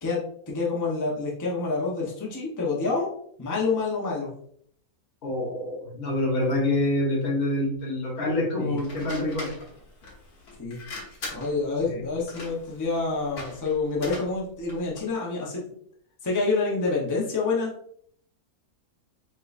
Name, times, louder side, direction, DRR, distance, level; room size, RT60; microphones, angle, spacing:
voice 1, 0.0-3.1 3.4-4.3 8.6-8.8 10.6-10.8 11.3-15.8 16.2-17.7, left 3 dB, 15° left, -4 dB, 0.7 m, -27 dB
voice 2, 5.2-9.5 11.9-12.0, left 1 dB, 70° left, 0 dB, 1.6 m, -26 dB
sound 1, 8.8-15.1, left 2 dB, 90° left, 1.7 m, -42 dB
5.0 x 3.3 x 2.5 m, 0.65 s
omnidirectional pair, 1.6 m